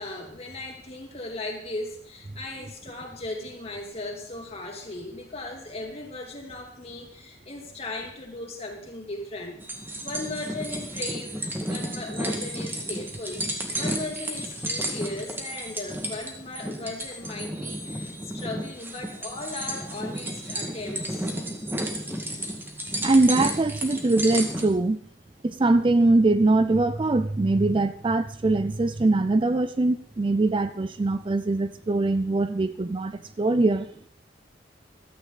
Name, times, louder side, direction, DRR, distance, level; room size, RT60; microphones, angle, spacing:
voice 1, 0.0-9.6 10.0-21.4, left 2 dB, 35° left, 0 dB, 3.1 m, -37 dB
sound 1, 9.6-24.7, right 1 dB, 10° right, 1.9 m, -32 dB
voice 2, 23.0-25.0 25.4-33.9, right 2 dB, 30° right, 12 dB, 0.4 m, -22 dB
15.5 x 13.0 x 4.0 m, 0.63 s
head